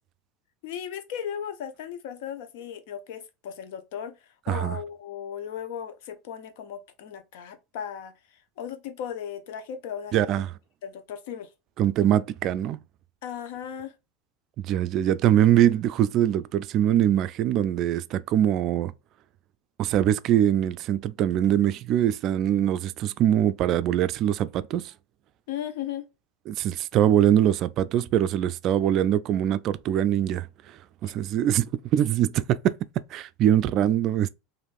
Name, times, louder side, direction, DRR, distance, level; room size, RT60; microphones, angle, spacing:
voice 1, 0.6-4.1 4.5-8.1 8.6-10.5 10.8-11.5 13.2-13.9 25.5-26.1 31.0-31.1, left 9 dB, 75° left, 0.7 m, -36 dB
voice 2, 4.5-4.8 10.1-10.5 11.8-12.8 14.6-18.9 19.8-24.9 26.5-32.7 33.1-34.3, right 11 dB, 50° right, 0.3 m, -23 dB
3.3 x 2.6 x 2.4 m
supercardioid pair, 105°, 0 cm